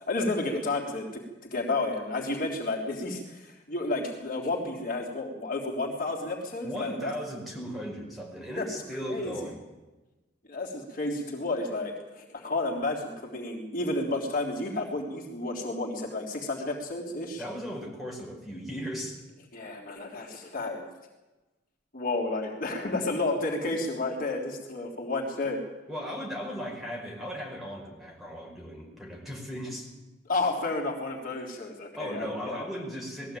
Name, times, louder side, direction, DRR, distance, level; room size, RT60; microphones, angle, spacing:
voice 1, 0.1-7.1 8.6-8.7 9.1-9.3 10.5-17.4 19.5-20.9 21.9-25.6 30.3-32.6, left 2 dB, 50° left, 0 dB, 3.5 m, -31 dB
voice 2, 6.6-9.6 17.4-19.2 25.9-29.9 32.0-33.4, equal, ahead, -1 dB, 5.4 m, -37 dB
20.0 x 15.0 x 9.1 m, 1.1 s
head